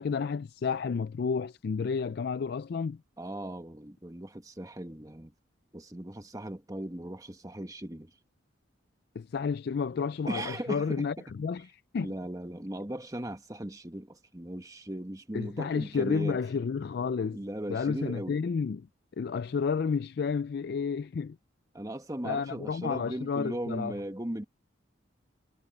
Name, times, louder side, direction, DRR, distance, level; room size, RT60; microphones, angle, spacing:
voice 1, 0.0-3.0 9.2-12.1 15.3-17.4 17.7-18.9 19.2-21.4 22.2-23.9, left 5 dB, 55° left, 0.3 m, -31 dB
voice 2, 3.2-5.3 5.7-8.1 10.3-11.1 12.0-16.4 17.3-18.4 21.7-24.4, right 1 dB, 15° right, 1.3 m, -38 dB
head